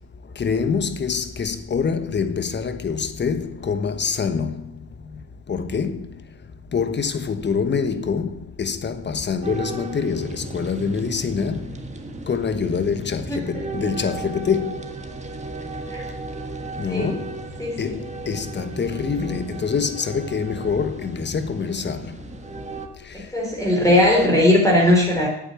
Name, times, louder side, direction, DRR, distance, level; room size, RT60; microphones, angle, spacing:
voice 1, 0.4-4.5 5.5-6.1 6.7-11.7 12.3-14.8 16.8-17.2 17.8-18.0 18.3-22.1, left 6 dB, 35° left, 1.2 m, -25 dB
sound 1, 9.4-22.9, right 3 dB, 25° right, 1.6 m, -36 dB
voice 2, 13.3-13.6 15.9-16.1 16.9-17.1 17.6-17.8 23.1-25.3, left 1 dB, 10° left, 3.7 m, -18 dB
8.9 x 8.8 x 7.6 m
cardioid pair, 90°, 30 cm